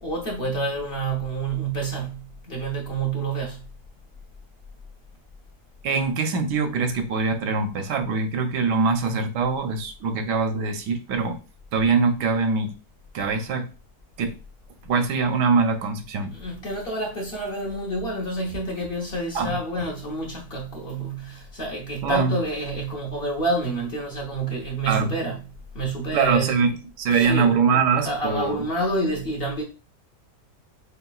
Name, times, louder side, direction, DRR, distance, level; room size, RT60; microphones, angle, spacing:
voice 1, 0.0-3.7 16.3-25.4 25.7-26.6 27.1-27.6 28.0-29.6, right 2 dB, 40° left, 1.0 m, -28 dB
voice 2, 5.8-11.4 11.7-12.7 13.1-13.7 14.2-14.4 14.8-16.3 19.3-19.6 22.0-22.4 24.9-25.1 26.1-28.6, right 4 dB, 85° right, 1.3 m, -23 dB
6.7 x 2.3 x 2.3 m
omnidirectional pair, 1.8 m